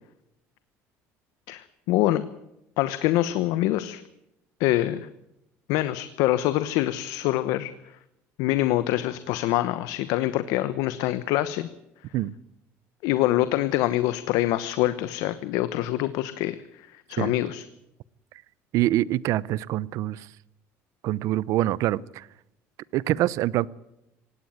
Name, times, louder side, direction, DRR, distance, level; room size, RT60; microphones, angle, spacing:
voice 1, 1.5-2.2 2.8-4.0 4.6-5.1 5.7-7.7 8.4-11.7 13.0-17.6, left 15 dB, 85° left, 1.0 m, -25 dB
voice 2, 18.7-20.3 21.0-22.3 22.9-23.7, right 15 dB, 70° right, 0.7 m, -25 dB
18.0 x 17.0 x 9.3 m
cardioid pair, 120°, 6 cm